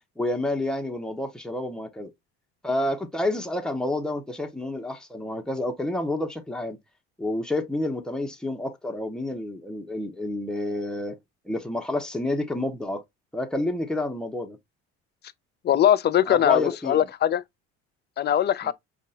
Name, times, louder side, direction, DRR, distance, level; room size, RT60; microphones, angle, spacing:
voice 1, 0.2-2.1 2.6-6.8 7.2-11.2 11.4-13.0 13.3-14.6 16.3-17.0 18.6-18.7, left 1 dB, ahead, 1.0 m, -29 dB
voice 2, 15.6-17.4 18.2-18.7, left 10 dB, 30° left, 0.4 m, -21 dB
5.2 x 2.5 x 2.5 m
hypercardioid pair, 75°, 34 cm